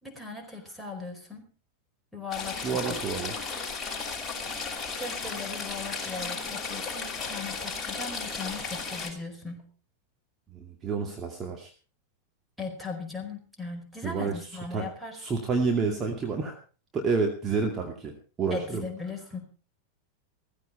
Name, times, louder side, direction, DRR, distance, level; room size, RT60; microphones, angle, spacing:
voice 1, 0.0-1.4 2.1-2.6 2.8-3.0 5.0-9.6 12.6-15.2 18.5-19.4, left 3 dB, ahead, 3 dB, 4.7 m, -38 dB
Stream / Trickle dribble, 2.3-9.1, left 4 dB, 15° left, 5.9 m, -34 dB
voice 2, 2.6-3.4 10.5-11.7 14.0-14.3 14.7-14.8 15.1-16.6 16.9-18.8, right 4 dB, 25° right, 2 dB, 2.4 m, -29 dB
16.0 x 15.0 x 4.4 m, 0.36 s
figure-of-eight pair, 90°, 0 cm